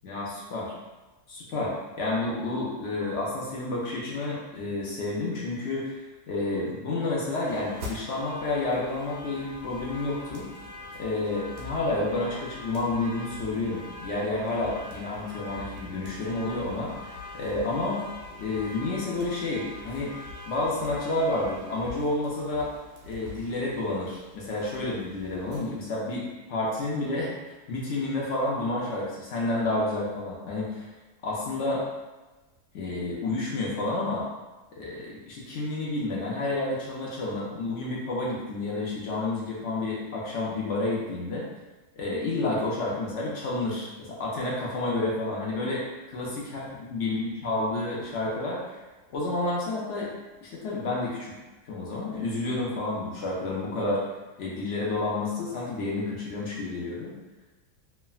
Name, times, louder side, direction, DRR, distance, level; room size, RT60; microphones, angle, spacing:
voice 1, 0.0-0.7 1.3-10.5 10.9-18.0 18.4-20.1 20.5-22.7 23.1-30.9 31.2-31.8 32.7-34.2 34.7-41.4 42.0-45.8 46.1-48.8 49.1-50.1 50.4-51.3 51.7-54.0 54.4-57.2, left 2 dB, 65° left, -5 dB, 0.8 m, -30 dB
sound 1, 7.3-25.6, left 2 dB, 85° right, 1.3 m, -43 dB
3.3 x 2.1 x 2.3 m, 1.2 s
omnidirectional pair, 1.7 m